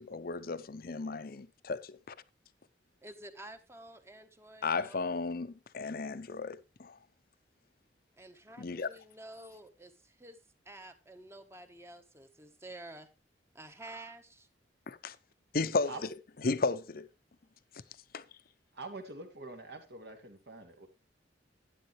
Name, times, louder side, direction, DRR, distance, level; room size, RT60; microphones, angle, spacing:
voice 1, 0.0-2.1 4.6-7.0 8.6-8.9 14.9-15.2 15.5-15.9 16.4-17.1 18.1-18.2, left 4 dB, 55° left, 0.7 m, -34 dB
voice 2, 3.0-5.1 8.2-10.4 10.6-13.1 13.5-14.5, right 1 dB, 15° right, 1.2 m, -50 dB
voice 3, 18.7-20.9, right 2 dB, 65° right, 2.5 m, -45 dB
12.0 x 10.5 x 3.2 m
head